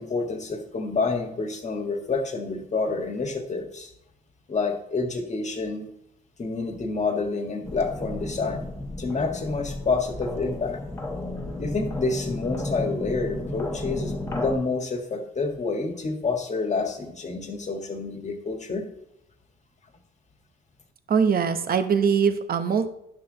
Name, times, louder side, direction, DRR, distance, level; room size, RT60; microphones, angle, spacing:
voice 1, 0.0-3.9 4.5-5.9 6.4-8.7 9.0-10.8 11.6-18.9, left 3 dB, 35° left, 4 dB, 1.6 m, -28 dB
sound 1, 7.6-14.5, left 1 dB, 15° left, 1.4 m, -33 dB
voice 2, 21.1-22.9, right 6 dB, 50° right, 9 dB, 0.9 m, -22 dB
11.0 x 6.0 x 3.9 m, 0.80 s
cardioid pair, 90°, 20 cm